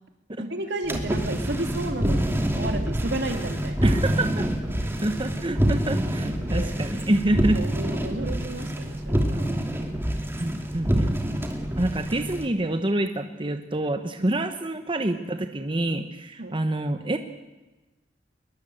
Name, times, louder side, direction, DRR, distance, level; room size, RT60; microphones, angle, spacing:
voice 1, 0.4-4.0 6.5-6.7 7.5-9.5 10.8-11.4 14.2-14.3 16.4-16.5, right 2 dB, 70° right, 5 dB, 2.7 m, -33 dB
sound 1, 0.8-12.5, equal, 15° right, 2.7 m, -26 dB
voice 2, 3.8-4.5 5.0-7.6 10.4-11.2 11.8-17.2, right 1 dB, 30° right, 7 dB, 1.0 m, -27 dB
22.0 x 22.0 x 7.9 m, 1.1 s
head